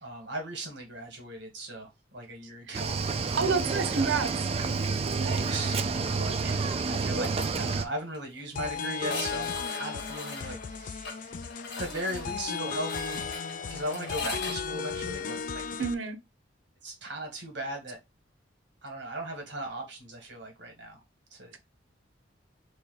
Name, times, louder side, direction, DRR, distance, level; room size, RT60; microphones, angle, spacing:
voice 1, 0.0-3.4 3.7-4.2 5.2-5.8 6.2-7.3 7.5-11.4 11.8-13.4 13.7-15.6 16.8-18.0 18.8-21.0 21.3-21.6, right 1 dB, 65° right, 1.6 m, -38 dB
Cricket / Waves surf, 2.7-7.8, right 4 dB, 35° right, 0.4 m, -29 dB
voice 2, 3.4-4.3 15.8-16.2, right 5 dB, 85° right, 0.8 m, -28 dB
sound 1, 6.9-7.5 7.8-7.9 8.1-8.2 9.0-14.6, left 3 dB, 65° left, 1.3 m, -39 dB
sound 2, 8.6-15.9, left 6 dB, 45° left, 0.3 m, -35 dB
3.1 x 2.7 x 4.0 m
head